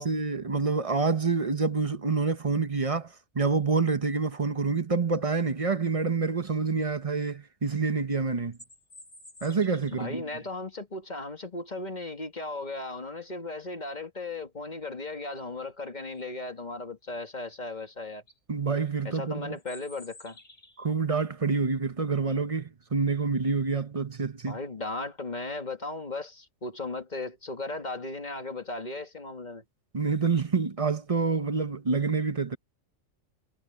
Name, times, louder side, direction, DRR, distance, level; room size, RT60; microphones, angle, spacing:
voice 1, 0.0-8.6 9.4-10.2 18.5-19.6 20.8-24.6 29.9-32.6, right 4 dB, 30° right, 0.9 m, -27 dB
sound 1, 8.3-10.2 14.7-14.8 15.2-15.6 17.7-17.8 18.1-18.4 19.6-20.9, left 2 dB, 70° left, 4.4 m, -52 dB
voice 2, 9.9-18.2 19.0-20.4 24.5-29.6, left 2 dB, 35° left, 2.1 m, -36 dB
omnidirectional pair, 1.3 m